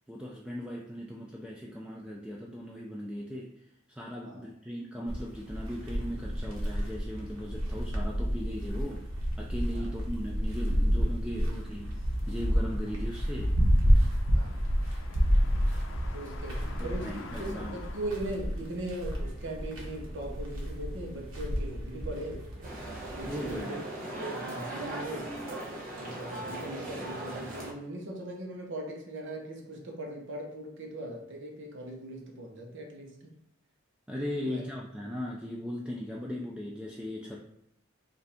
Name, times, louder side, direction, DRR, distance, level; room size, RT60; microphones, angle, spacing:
voice 1, 0.1-3.5 3.9-9.1 9.4-13.6 16.8-17.8 23.3-23.8 34.1-37.4, equal, 5° right, -2 dB, 0.4 m, -38 dB
sound 1, 5.1-23.6, equal, 85° right, 1.2 m, -30 dB
sound 2, 11.8-18.1, left 3 dB, 65° left, 0.5 m, -50 dB
voice 2, 14.3-14.8 16.1-22.5 23.2-23.8 24.2-25.3 26.0-33.3 34.4-34.6, right 1 dB, 65° right, 0 dB, 1.0 m, -39 dB
sound 3, 22.6-27.7, right 1 dB, 45° right, 1.0 m, -39 dB
5.2 x 2.6 x 3.4 m, 0.77 s
head